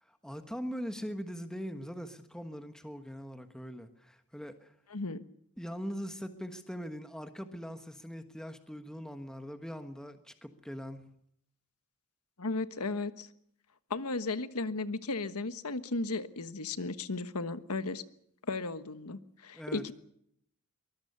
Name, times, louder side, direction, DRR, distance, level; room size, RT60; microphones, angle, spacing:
voice 1, 0.0-4.7 5.6-11.1 19.5-19.9, equal, 5° left, 7 dB, 1.3 m, -41 dB
voice 2, 4.9-5.2 12.4-13.3 13.9-18.0 18.5-19.9, left 3 dB, 85° left, 11 dB, 1.4 m, -35 dB
23.5 x 20.5 x 6.8 m, 0.70 s
head